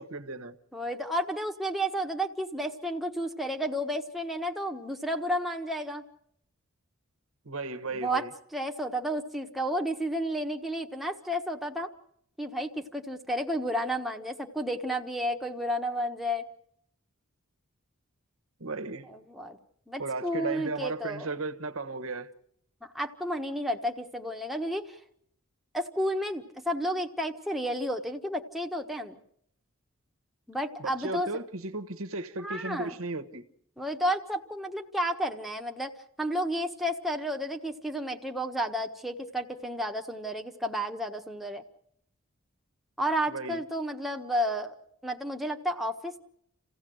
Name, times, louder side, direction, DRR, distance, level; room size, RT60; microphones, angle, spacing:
voice 1, 0.0-0.6 7.4-8.3 18.6-19.0 20.0-22.3 30.8-33.4 43.3-43.6, right 3 dB, 80° right, 1.3 m, -35 dB
voice 2, 0.7-6.0 7.9-8.2 8.5-11.9 12.4-16.4 19.1-19.6 19.9-21.3 22.8-25.0 25.7-29.2 30.5-31.3 32.4-33.0 33.8-35.9 36.2-41.6 43.0-44.7 45.0-46.2, equal, ahead, 1.3 m, -32 dB
28.5 x 16.0 x 7.8 m
head